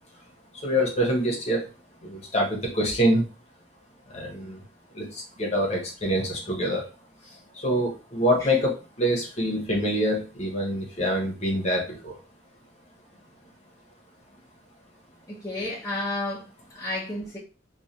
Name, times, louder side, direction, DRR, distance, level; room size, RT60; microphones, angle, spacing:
voice 1, 0.5-1.7 2.0-3.2 4.1-4.6 4.9-6.8 7.6-12.1, equal, 35° left, 1.0 m, -25 dB
voice 2, 15.3-17.4, left 2 dB, 15° left, 0.7 m, -32 dB
3.1 x 2.4 x 2.6 m
head